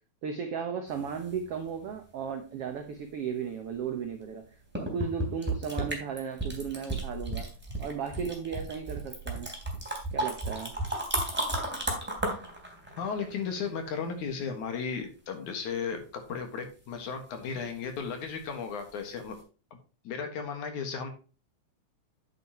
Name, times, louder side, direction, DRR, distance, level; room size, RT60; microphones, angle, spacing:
voice 1, 0.2-4.4 4.8-7.5 7.8-9.5 10.1-10.7, right 7 dB, 80° right, 1.3 m, -35 dB
sound 1, 0.9-1.9 4.2-4.3 4.7-13.8 18.8-18.9 19.3-19.4, right 1 dB, 5° right, 2.7 m, -34 dB
voice 2, 13.0-19.4 20.0-21.1, left 6 dB, 60° left, 2.8 m, -35 dB
9.1 x 8.4 x 3.0 m
omnidirectional pair, 4.2 m